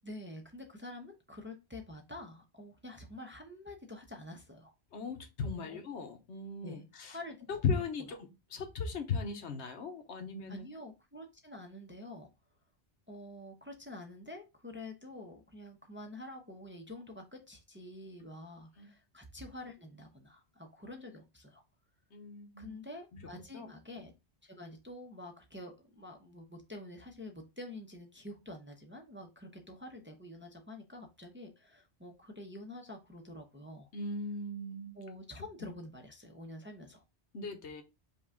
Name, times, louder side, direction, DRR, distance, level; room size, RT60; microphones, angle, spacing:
voice 1, 0.0-4.7 5.6-5.8 6.6-7.4 10.5-12.3 13.1-21.6 22.6-24.1 24.4-33.9 34.9-37.0, left 1 dB, 15° right, 0.6 m, -47 dB
voice 2, 4.9-7.2 7.5-8.2 8.5-10.6 18.8-18.9 22.1-22.7 23.5-23.7 33.9-35.0 37.3-37.8, left 5 dB, 90° left, 1.1 m, -37 dB
5.3 x 2.3 x 3.6 m
omnidirectional pair, 1.1 m